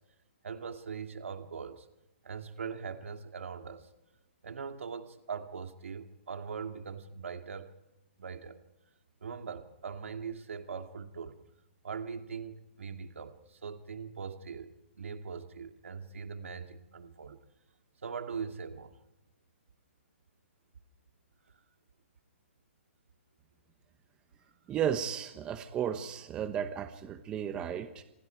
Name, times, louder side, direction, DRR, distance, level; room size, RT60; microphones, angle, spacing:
voice 1, 0.4-1.9 2.2-3.9 4.4-7.7 8.2-8.6 9.2-11.4 11.8-17.4 18.0-18.9, right 6 dB, 85° right, 6 dB, 2.4 m, -41 dB
voice 2, 24.7-28.0, right 9 dB, 15° right, 9 dB, 1.1 m, -34 dB
28.5 x 27.5 x 4.6 m, 0.95 s
hypercardioid pair, 165°, 7 cm